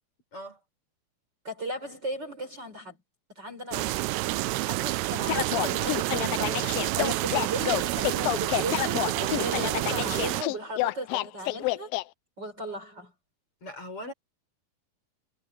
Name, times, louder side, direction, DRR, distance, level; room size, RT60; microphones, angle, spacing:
voice 1, 1.5-3.0 3.4-4.0 4.6-11.9 12.4-13.1, right 1 dB, 25° right, 5.3 m, -36 dB
sound 1, 3.7-10.4, right 22 dB, 85° right, 2.4 m, -29 dB
sound 2, 5.3-12.0, left 18 dB, 90° left, 2.1 m, -29 dB
Engine, 5.4-10.4, right 5 dB, 50° right, 4.0 m, -40 dB
voice 2, 13.6-14.1, left 1 dB, 30° left, 6.9 m, -39 dB
omnidirectional pair, 4.8 m